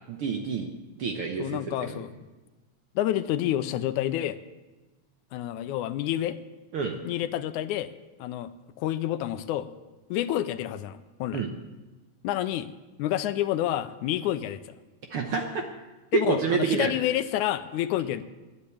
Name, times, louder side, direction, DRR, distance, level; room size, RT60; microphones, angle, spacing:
voice 1, 0.1-0.7 1.0-1.8 6.7-7.0 11.3-11.5 15.1-15.6 16.1-16.9, right 5 dB, 65° right, 4 dB, 1.4 m, -27 dB
voice 2, 1.4-2.1 3.0-4.4 5.3-6.4 7.0-7.9 8.2-8.5 8.8-9.7 10.1-11.4 12.2-12.7 13.0-14.6 16.1-18.2, left 12 dB, 85° left, 12 dB, 2.0 m, -28 dB
12.0 x 10.0 x 8.5 m, 1.2 s
omnidirectional pair, 3.5 m